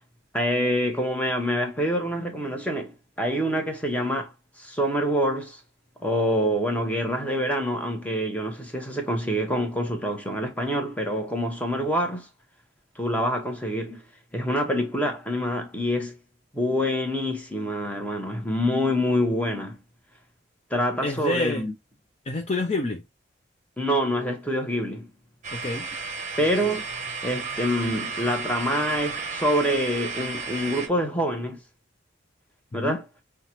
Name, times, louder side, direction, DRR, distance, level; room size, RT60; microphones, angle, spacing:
voice 1, 0.3-4.3 4.6-5.6 6.0-12.3 13.0-14.0 14.3-16.1 16.5-19.8 20.7-21.7 23.8-25.1 26.4-26.9 27.2-31.6 32.7-33.0, equal, 5° left, 0.9 m, -26 dB
voice 2, 21.0-21.7 22.3-23.0 25.5-25.9 32.7-33.0, left 2 dB, 35° left, 0.5 m, -28 dB
sound 1, 25.4-30.9, right 4 dB, 40° right, 0.8 m, -33 dB
5.5 x 2.3 x 2.9 m
head